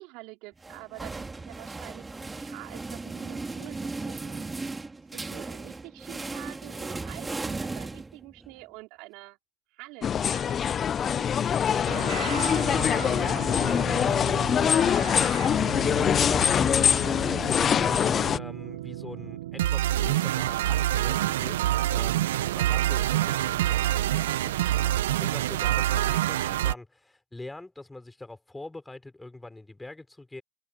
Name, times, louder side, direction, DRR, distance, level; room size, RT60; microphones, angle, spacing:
voice 1, 0.0-2.0 2.4-4.5 5.1-9.4 9.7-11.9, right 24 dB, 55° right, 4.4 m, -47 dB
sound 1, 0.6-8.5, right 3 dB, 10° right, 2.0 m, -36 dB
sound 2, 10.0-18.4, left 8 dB, 30° left, 0.4 m, -24 dB
sound 3, 11.9-26.7, right 13 dB, 75° right, 0.6 m, -28 dB
voice 2, 12.4-21.6 21.9-30.4, left 2 dB, 10° left, 5.0 m, -43 dB
hypercardioid pair, 110°, 0 cm